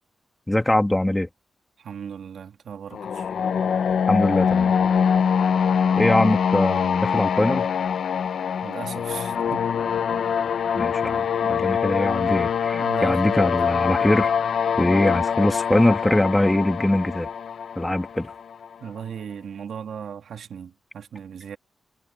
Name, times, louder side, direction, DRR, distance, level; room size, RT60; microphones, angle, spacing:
voice 1, 0.5-1.3 4.1-4.7 6.0-7.7 10.8-14.4 14.8-17.3 17.8-18.3, left 1 dB, 10° left, 2.2 m, -22 dB
voice 2, 1.8-3.3 8.2-8.3 8.6-9.7 10.1-10.2 11.4-11.5 12.3-12.4 12.7-13.8 18.8-21.6, right 7 dB, 85° right, 2.0 m, -37 dB
sound 1, 2.9-18.7, left 7 dB, 75° left, 1.1 m, -24 dB
wide cardioid pair, 125°, 0 cm